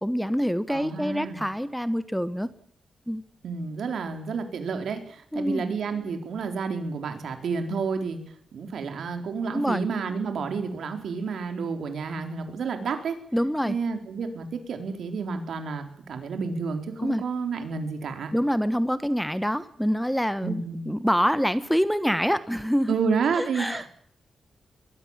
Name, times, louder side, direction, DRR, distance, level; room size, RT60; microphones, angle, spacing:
voice 1, 0.0-2.5 3.1-3.2 5.3-5.6 9.5-9.8 13.3-13.8 17.0-17.2 18.3-22.9 23.4-23.8, equal, ahead, 13 dB, 1.2 m, -26 dB
voice 2, 0.7-1.4 3.4-8.2 8.5-13.2 13.7-18.3 20.4-20.9 22.9-23.9, right 5 dB, 75° right, 6 dB, 4.2 m, -30 dB
22.0 x 22.0 x 7.5 m, 0.62 s
cardioid pair, 105°, 0 cm